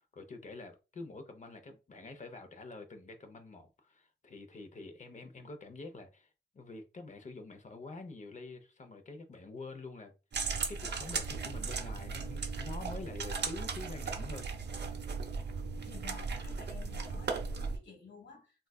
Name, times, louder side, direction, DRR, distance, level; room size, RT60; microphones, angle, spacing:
voice 1, 0.0-6.3 6.5-10.1 10.7-14.5, left 3 dB, 40° left, 0.6 m, -47 dB
sound 1, 10.3-17.8, right 4 dB, 65° right, 0.7 m, -37 dB
voice 2, 15.8-18.7, left 4 dB, 70° left, 1.3 m, -53 dB
3.7 x 2.3 x 2.2 m
wide cardioid pair, 105°, 19 cm